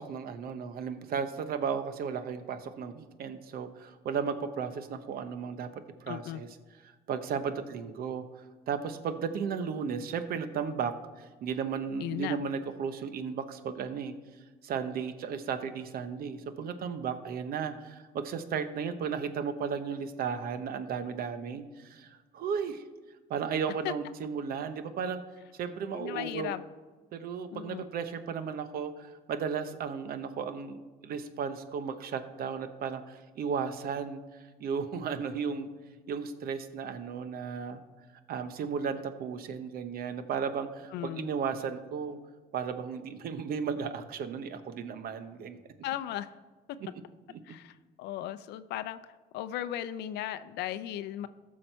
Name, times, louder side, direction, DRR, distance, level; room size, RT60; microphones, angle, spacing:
voice 1, 0.0-6.5 7.1-14.1 14.6-22.8 23.3-25.2 25.5-26.5 27.1-35.7 36.1-37.8 38.3-42.2 42.5-45.6 47.3-47.4, right 6 dB, 60° right, 11 dB, 0.9 m, -35 dB
voice 2, 6.1-6.4 12.0-12.4 23.8-23.9 25.9-26.6 27.5-27.8 40.9-41.3 45.8-46.3 47.4-51.3, left 12 dB, 80° left, 13 dB, 0.5 m, -36 dB
14.5 x 6.4 x 4.5 m, 1.3 s
cardioid pair, 110°, 17 cm